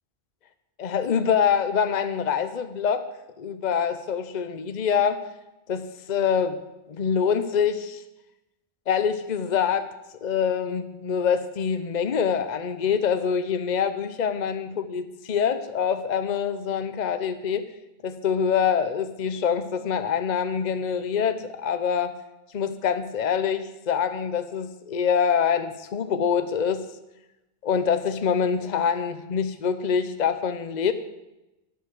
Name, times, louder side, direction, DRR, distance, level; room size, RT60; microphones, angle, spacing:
voice 1, 0.8-3.0 3.4-5.2 5.7-6.6 6.9-8.0 8.9-9.9 10.2-17.6 18.0-22.1 22.5-26.8 27.6-30.9, left 7 dB, 50° left, 10 dB, 0.8 m, -25 dB
11.5 x 10.5 x 6.0 m, 0.96 s
omnidirectional pair, 1.0 m